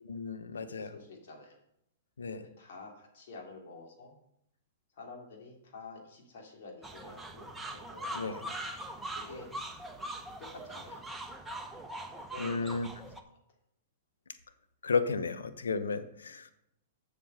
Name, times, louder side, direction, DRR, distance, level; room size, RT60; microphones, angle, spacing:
voice 1, 0.1-0.9 2.2-2.5 8.1-8.4 12.4-12.9 14.8-16.5, left 4 dB, 85° left, 10 dB, 0.9 m, -33 dB
voice 2, 0.7-1.6 2.4-4.1 4.9-8.8 9.2-9.5 10.4-11.1 12.2-13.0, left 3 dB, 60° left, 1 dB, 3.0 m, -49 dB
sound 1, 6.8-13.2, right 1 dB, 5° right, 1.1 m, -42 dB
7.4 x 7.0 x 6.5 m, 0.78 s
hypercardioid pair, 115°, 0 cm